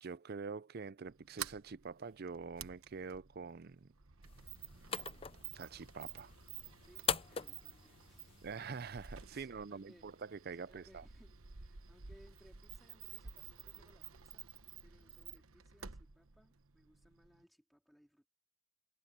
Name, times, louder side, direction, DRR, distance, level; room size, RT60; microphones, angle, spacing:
voice 1, 0.0-3.9 5.5-6.3 8.4-11.0, right 5 dB, 45° right, 0.5 m, -45 dB
Sliding door, 1.0-17.4, right 8 dB, 80° right, 1.1 m, -52 dB
sound 1, 4.2-9.3, left 7 dB, 25° left, 0.5 m, -43 dB
voice 2, 6.8-8.8 9.3-10.1 10.6-14.5 14.8-18.3, equal, ahead, 3.1 m, -66 dB
head